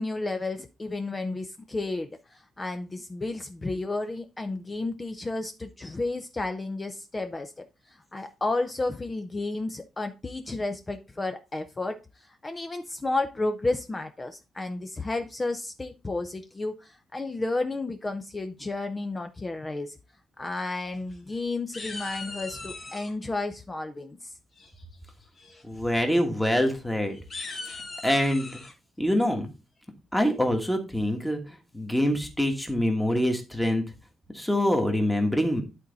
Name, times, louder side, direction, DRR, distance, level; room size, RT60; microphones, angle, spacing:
voice 1, 0.0-12.0 12.4-20.0 20.4-24.3, left 2 dB, 20° left, 0.5 m, -32 dB
sound 1, 20.8-21.4 21.7-23.1 24.6-25.0 25.4-25.6 25.9-26.0 26.4-26.5 27.1-28.7, left 3 dB, 35° left, 1.7 m, -40 dB
voice 2, 25.6-27.2 27.5-27.6 28.0-28.6 29.0-29.5 30.1-33.8 34.3-35.6, equal, 5° left, 1.4 m, -25 dB
11.0 x 4.1 x 4.0 m
wide cardioid pair, 165°, 0 cm